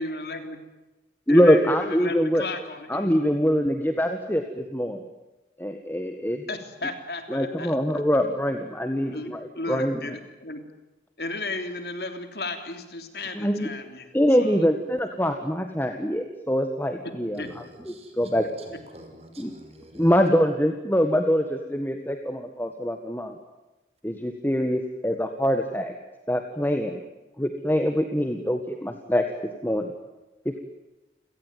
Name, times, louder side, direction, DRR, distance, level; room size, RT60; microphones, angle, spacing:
voice 1, 0.0-0.6 1.3-3.1 6.5-7.8 9.0-10.6 11.2-14.1 14.4-14.7 17.4-17.5, left 2 dB, 60° left, 7 dB, 3.4 m, -34 dB
voice 2, 1.3-2.5 2.9-5.0 5.6-6.4 7.3-10.1 13.3-13.7 14.1-18.5 19.4-19.5 19.9-23.3 24.0-25.9 26.3-27.0 27.4-29.3 29.6-29.9 30.4-30.6, equal, 10° left, 5 dB, 1.6 m, -24 dB
voice 3, 17.4-20.2, right 1 dB, 35° right, 5 dB, 6.1 m, -46 dB
29.5 x 18.0 x 9.4 m, 1.1 s
head